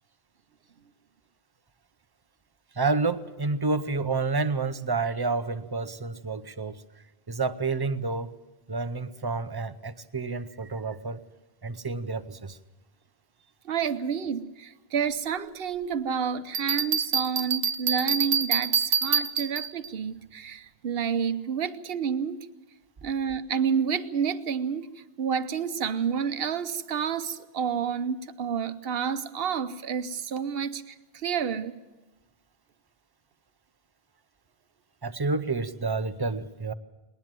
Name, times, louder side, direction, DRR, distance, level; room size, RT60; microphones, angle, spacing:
voice 1, 2.7-6.8 7.3-8.3 8.7-11.2 11.6-12.6 35.0-36.7, right 3 dB, 25° right, 13 dB, 0.6 m, -29 dB
voice 2, 13.6-22.4 23.0-31.7, right 7 dB, 65° right, 12 dB, 1.1 m, -29 dB
Bell, 16.5-19.9, right 6 dB, 90° right, 1.1 m, -26 dB
20.5 x 19.0 x 7.6 m, 1.1 s
omnidirectional pair, 1.1 m